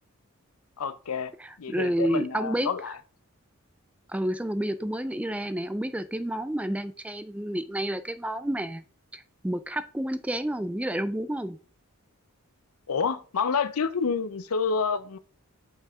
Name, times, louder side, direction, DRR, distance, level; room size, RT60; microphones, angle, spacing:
voice 1, 0.8-1.3 1.6-2.9 12.9-15.2, left 5 dB, 80° left, 0.6 m, -28 dB
voice 2, 1.4-2.7 4.1-8.8 9.1-11.6, right 1 dB, 5° right, 0.3 m, -30 dB
7.0 x 5.3 x 3.6 m
head